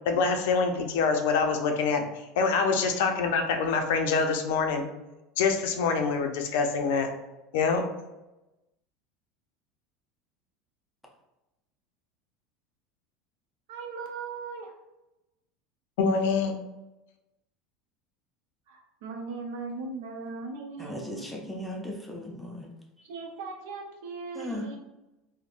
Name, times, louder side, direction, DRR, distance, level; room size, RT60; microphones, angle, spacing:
voice 1, 0.1-2.0 2.4-4.8 5.4-7.1 7.5-7.8 16.0-16.6, left 5 dB, 80° left, 4 dB, 0.4 m, -25 dB
voice 2, 13.7-14.8 18.7-21.4 23.0-24.8, right 4 dB, 75° right, 2 dB, 0.6 m, -38 dB
voice 3, 20.8-22.7 24.3-24.7, left 1 dB, ahead, -1 dB, 0.4 m, -37 dB
3.3 x 2.1 x 2.4 m, 0.98 s
supercardioid pair, 155°, 0 cm